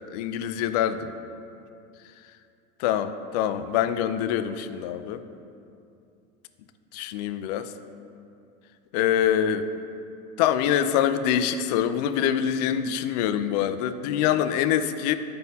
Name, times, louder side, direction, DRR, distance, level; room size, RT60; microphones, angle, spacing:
voice 1, 0.1-1.1 2.8-5.2 6.9-7.7 8.9-9.7 10.4-15.2, left 10 dB, 70° left, 11 dB, 0.4 m, -25 dB
9.2 x 5.2 x 2.8 m, 2.5 s
supercardioid pair, 145°, 21 cm